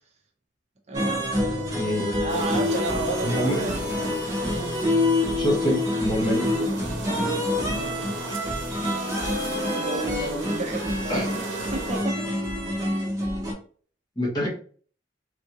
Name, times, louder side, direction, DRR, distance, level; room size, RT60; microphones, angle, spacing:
sound 1, 0.9-13.5, left 1 dB, 20° right, 1.1 m, -27 dB
voice 1, 0.9-1.7 2.2-4.1 4.5-4.8 7.6-8.6 9.7-11.4 11.7-12.8, right 2 dB, 40° right, 0.7 m, -33 dB
voice 2, 1.7-2.2 3.2-3.6 5.4-6.7 11.1-11.3 14.2-14.5, equal, 20° left, 1.0 m, -26 dB
sound 2, 2.3-12.0, right 2 dB, 90° right, 0.8 m, -36 dB
3.6 x 2.6 x 2.9 m
head